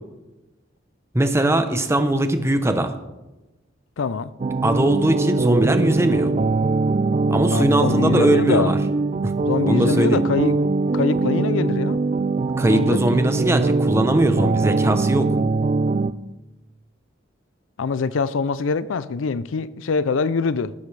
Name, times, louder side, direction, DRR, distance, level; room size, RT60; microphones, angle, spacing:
voice 1, 1.1-2.9 4.6-6.3 7.3-8.8 9.2-9.3 9.7-10.2 12.6-15.3, right 1 dB, 15° right, 0.8 m, -20 dB
voice 2, 4.0-4.3 7.5-8.7 9.5-10.6 10.9-12.0 12.7-13.2 17.8-20.7, left 4 dB, 90° left, 0.5 m, -24 dB
sound 1, 4.4-16.1, right 3 dB, 35° right, 0.3 m, -22 dB
15.0 x 13.0 x 3.3 m
head